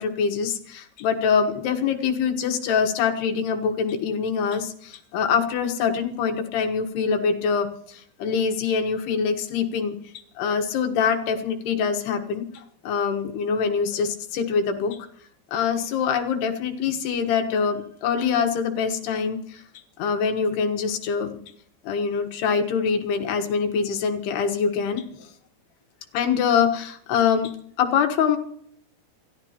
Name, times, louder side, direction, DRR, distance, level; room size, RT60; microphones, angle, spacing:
voice 1, 0.0-10.0 10.4-15.0 15.5-19.6 20.0-21.4 21.8-25.3 26.1-28.4, left 6 dB, 70° left, 4 dB, 3.5 m, -24 dB
28.5 x 14.0 x 3.0 m, 0.66 s
omnidirectional pair, 5.0 m